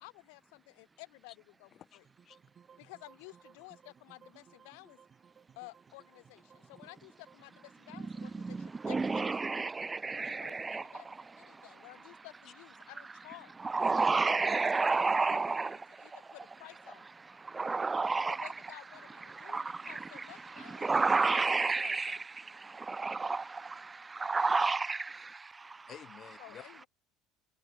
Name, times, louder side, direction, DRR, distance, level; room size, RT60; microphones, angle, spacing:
voice 1, 0.0-2.0 2.8-5.0 5.5-9.6 10.1-13.5 14.4-17.1 18.3-21.3 21.6-22.2 26.4-26.9, left 34 dB, 80° left, 3.1 m, -53 dB
voice 2, 1.7-2.4 12.5-12.6 25.9-26.6, left 10 dB, 50° left, 3.9 m, -52 dB
sound 1, 2.0-12.2, right 7 dB, 35° right, 4.7 m, -63 dB
voice 3, 8.0-11.2 11.5-11.6 13.6-16.2 17.4-18.5 19.3-25.9, right 4 dB, 20° right, 0.7 m, -31 dB
supercardioid pair, 90°, 0 cm